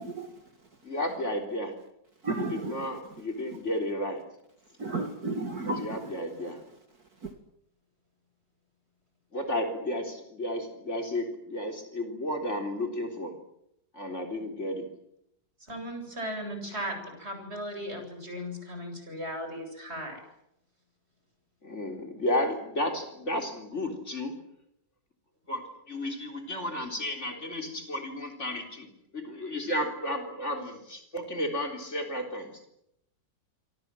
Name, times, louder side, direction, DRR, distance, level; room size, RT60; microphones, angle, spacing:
voice 1, 0.0-0.4 2.2-3.0 4.8-6.5 7.2-7.3, right 2 dB, 55° right, 6 dB, 2.6 m, -34 dB
voice 2, 0.8-1.7 2.3-4.2 5.6-6.6 9.3-13.3 13.9-14.9 21.6-24.3 25.5-28.9 29.1-32.5, left 1 dB, 40° left, 4 dB, 4.1 m, -33 dB
voice 3, 15.6-20.2, equal, 35° right, 5 dB, 8.4 m, -37 dB
27.0 x 25.5 x 7.7 m, 0.78 s
omnidirectional pair, 1.9 m